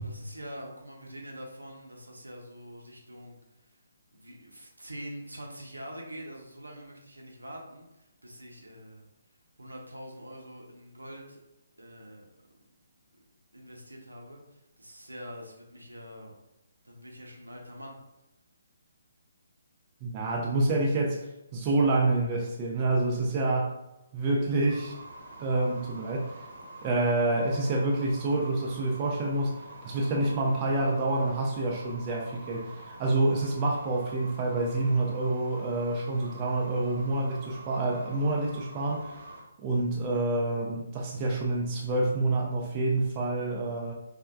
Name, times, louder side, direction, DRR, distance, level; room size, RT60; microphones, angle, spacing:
voice 1, 0.0-3.4 3.7-3.8 4.1-7.9 8.2-9.0 9.6-11.4 11.8-12.3 13.1-13.2 13.5-16.3 16.8-18.0, equal, 80° right, -1 dB, 0.7 m, -44 dB
voice 2, 20.0-21.3 21.5-23.8 24.1-25.0 25.4-26.4 26.8-29.5 29.8-39.1 39.6-43.9, right 2 dB, 25° right, -2 dB, 0.4 m, -27 dB
sound 1, 24.7-39.4, right 2 dB, 45° right, 0.9 m, -46 dB
4.3 x 2.1 x 2.2 m, 0.95 s
figure-of-eight pair, 135°, 0 cm